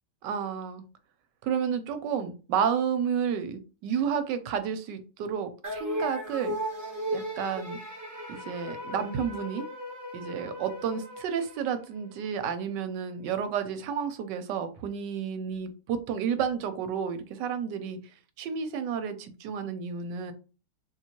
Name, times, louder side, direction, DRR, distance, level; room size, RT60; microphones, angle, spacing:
voice 1, 0.2-0.8 1.4-6.6 7.1-7.8 8.3-9.7 10.1-18.0 18.4-20.3, right 7 dB, 85° right, 10 dB, 1.3 m, -31 dB
sound 1, 5.6-12.2, equal, 15° right, 0.7 m, -36 dB
3.7 x 2.7 x 2.9 m, 0.35 s
omnidirectional pair, 1.8 m